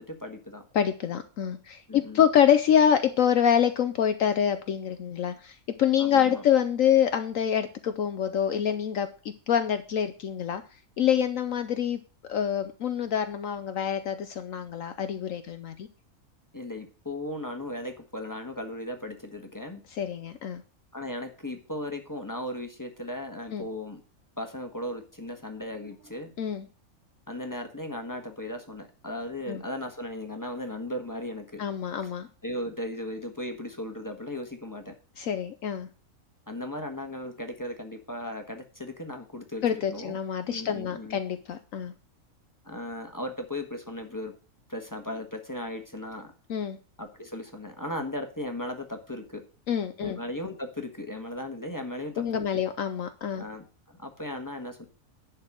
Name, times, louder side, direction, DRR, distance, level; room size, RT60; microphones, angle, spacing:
voice 1, 0.0-0.6 1.9-2.3 6.0-6.5 16.5-19.8 20.9-24.0 24.4-26.3 27.3-31.6 32.0-32.1 32.4-34.9 36.5-40.2 40.5-41.2 42.6-44.3 44.7-46.3 47.0-49.4 50.0-52.6 53.4-54.8, left 1 dB, 15° left, 5 dB, 1.5 m, -37 dB
voice 2, 0.7-10.6 11.0-12.0 12.3-15.9 19.9-20.6 23.5-23.7 26.4-26.7 29.5-29.6 31.6-32.3 35.2-35.9 39.6-41.9 46.5-46.8 49.7-50.2 52.2-53.4, left 9 dB, 65° left, 9 dB, 1.1 m, -26 dB
11.0 x 4.6 x 7.4 m, 0.36 s
omnidirectional pair, 1.5 m